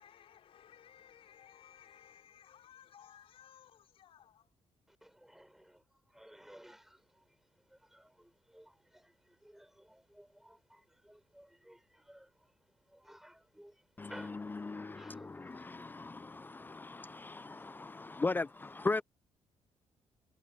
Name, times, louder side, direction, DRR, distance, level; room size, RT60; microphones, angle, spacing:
voice 1, 0.0-4.5, left 9 dB, 70° left, 5.4 m, -59 dB
voice 2, 4.9-18.2, equal, 5° right, 6.4 m, -59 dB
voice 3, 14.0-19.0, left 3 dB, 20° left, 0.3 m, -38 dB
cardioid pair, 90°, 10 cm